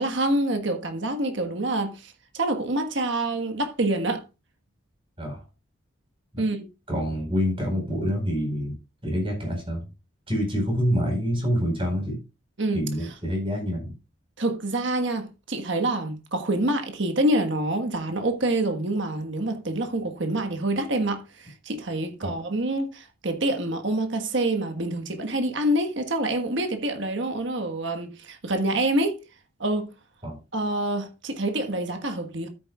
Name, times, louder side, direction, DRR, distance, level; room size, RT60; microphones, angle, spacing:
voice 1, 0.0-4.2 6.4-6.7 12.6-12.8 14.4-29.2 29.6-29.9 30.5-32.5, right 1 dB, 60° right, 1.5 m, -26 dB
voice 2, 6.9-8.7 9.0-9.8 10.3-12.2 12.7-13.9 22.2-22.3 30.2-30.3, equal, 25° right, 4.5 m, -26 dB
13.0 x 8.9 x 2.4 m
head